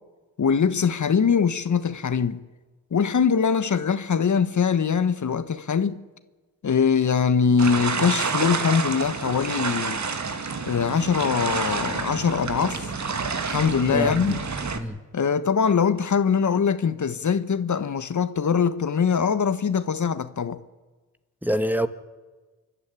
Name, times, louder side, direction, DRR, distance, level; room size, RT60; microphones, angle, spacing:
voice 1, 0.4-2.4 2.9-6.0 6.6-10.0 10.7-12.9 13.5-14.4 15.1-20.6, left 6 dB, 55° left, 1.4 m, -22 dB
sound 1, 7.6-14.8, right 4 dB, 50° right, 2.3 m, -29 dB
voice 2, 13.9-14.4 14.7-15.0 21.4-21.9, equal, 5° right, 1.6 m, -25 dB
27.5 x 12.0 x 9.9 m
supercardioid pair, 50°, 35 cm